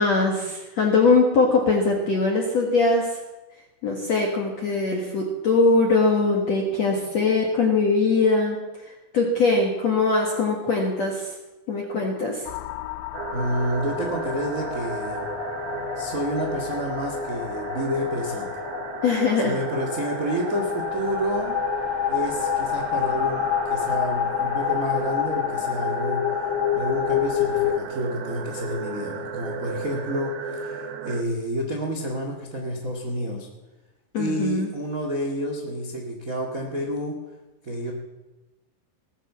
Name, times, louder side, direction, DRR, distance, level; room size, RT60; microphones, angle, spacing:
voice 1, 0.0-3.2 3.8-8.6 8.8-11.3 11.7-12.4 19.0-19.5 34.1-34.7, left 3 dB, 65° left, 0 dB, 1.7 m, -21 dB
sound 1, 12.5-27.8, left 12 dB, 90° left, 2.3 m, -29 dB
sound 2, 13.1-31.2, right 5 dB, 75° right, 1.8 m, -33 dB
voice 2, 13.3-15.2 15.9-18.5 19.4-21.6 22.1-26.2 26.7-33.5 34.2-37.1 37.6-37.9, equal, 90° right, 0 dB, 0.7 m, -29 dB
18.5 x 10.5 x 7.4 m, 1.1 s
omnidirectional pair, 5.4 m